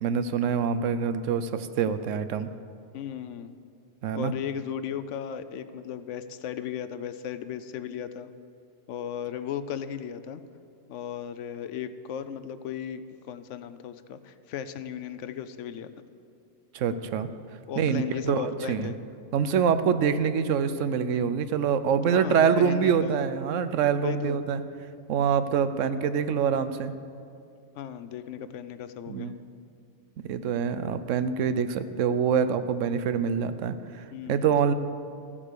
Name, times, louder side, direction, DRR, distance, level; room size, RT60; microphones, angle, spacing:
voice 1, 0.0-2.5 4.0-4.3 16.7-17.3 17.8-18.9 19.3-24.6 25.1-26.9 29.1-29.4 30.2-34.7, right 7 dB, 85° right, 12 dB, 1.0 m, -25 dB
voice 2, 2.9-3.5 4.1-8.3 8.9-10.4 10.9-13.0 13.3-15.9 17.7-19.0 22.1-23.1 24.0-24.4 27.8-29.3 34.1-34.4, left 8 dB, 75° left, 12 dB, 0.9 m, -36 dB
14.5 x 7.4 x 6.6 m, 2.5 s
omnidirectional pair, 1.3 m